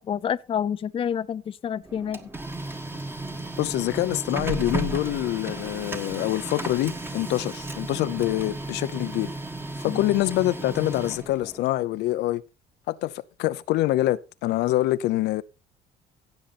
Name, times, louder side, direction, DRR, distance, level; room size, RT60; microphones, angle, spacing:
voice 1, 0.0-2.3 9.9-10.0, left 8 dB, 35° left, 0.5 m, -28 dB
Printer, 1.8-11.6, right 2 dB, 15° right, 1.5 m, -34 dB
voice 2, 3.6-9.3 9.8-12.4 12.9-13.1 13.4-15.4, left 16 dB, 80° left, 0.7 m, -25 dB
16.0 x 6.5 x 4.2 m
cardioid pair, 110°, 17 cm